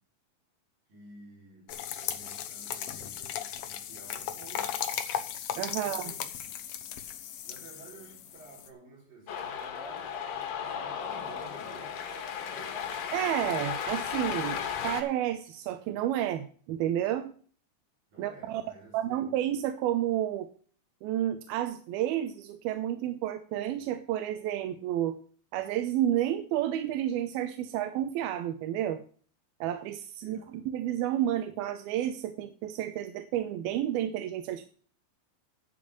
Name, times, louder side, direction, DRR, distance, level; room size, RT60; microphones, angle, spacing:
voice 1, 0.9-4.8 5.7-6.6 7.4-12.8 18.1-19.3 30.2-30.6, right 3 dB, 65° right, 6.1 m, -52 dB
sound 1, 1.7-8.7, left 10 dB, 90° left, 1.4 m, -37 dB
voice 2, 5.6-6.0 13.1-14.6 14.8-17.3 18.2-18.6 18.9-20.5 21.0-25.2 25.5-29.0 29.6-30.4 30.7-34.7, right 11 dB, 85° right, 2.6 m, -30 dB
Cheering, 9.3-15.0, left 8 dB, 70° left, 3.0 m, -35 dB
10.5 x 5.4 x 8.4 m
omnidirectional pair, 4.4 m